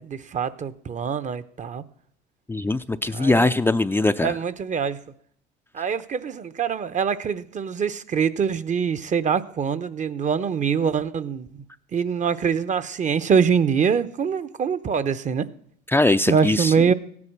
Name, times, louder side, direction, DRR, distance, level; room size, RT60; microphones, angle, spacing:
voice 1, 0.0-1.8 3.1-3.5 4.2-5.0 5.7-11.5 11.9-15.5 16.3-16.9, right 6 dB, 35° right, 0.9 m, -24 dB
voice 2, 2.5-4.4 15.9-16.7, left 2 dB, 10° left, 0.5 m, -21 dB
16.0 x 9.8 x 6.1 m
supercardioid pair, 80°, 20 cm